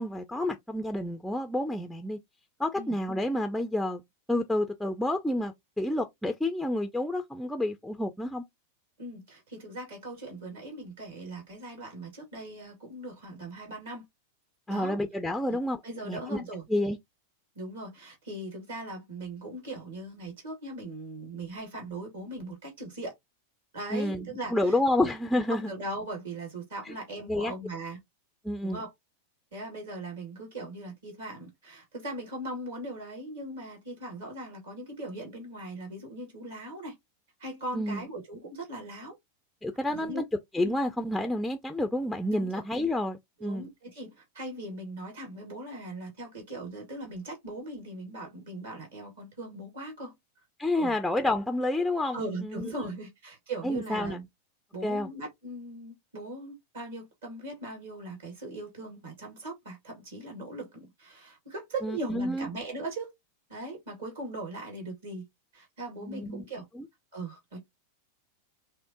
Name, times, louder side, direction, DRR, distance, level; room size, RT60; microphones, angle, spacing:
voice 1, 0.0-2.2 2.6-4.0 4.3-8.4 14.7-15.8 16.1-16.4 16.7-17.0 23.9-25.7 26.9-27.0 27.3-27.5 28.4-28.8 37.7-38.0 39.6-40.2 40.5-43.7 50.6-52.2 52.4-52.7 53.6-54.2 54.8-55.1 61.8-62.5 66.0-66.4 66.8-66.9, left 1 dB, ahead, 0.4 m, -29 dB
voice 2, 9.0-14.0 14.7-15.0 15.5-16.6 17.6-23.1 23.7-24.8 25.5-28.0 28.6-28.9 29.5-36.9 37.4-39.2 39.9-40.2 40.6-40.8 42.3-42.6 43.4-50.1 50.8-50.9 52.1-54.2 54.7-63.1 63.5-65.2 65.5-66.7 67.1-67.6, right 2 dB, 60° right, 2.2 m, -39 dB
5.8 x 2.1 x 2.8 m
figure-of-eight pair, 90°, 0 cm